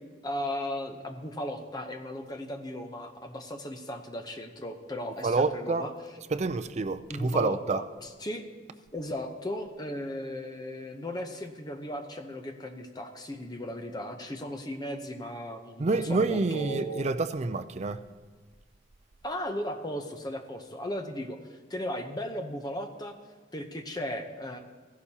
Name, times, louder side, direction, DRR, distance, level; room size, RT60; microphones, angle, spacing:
voice 1, 0.2-5.9 7.1-8.5 8.9-17.1 19.2-23.1 23.5-24.6, left 1 dB, 20° left, 0.8 m, -36 dB
voice 2, 5.2-5.8 6.3-7.8 15.8-18.0, right 3 dB, 35° right, 0.4 m, -28 dB
15.5 x 11.5 x 2.9 m
head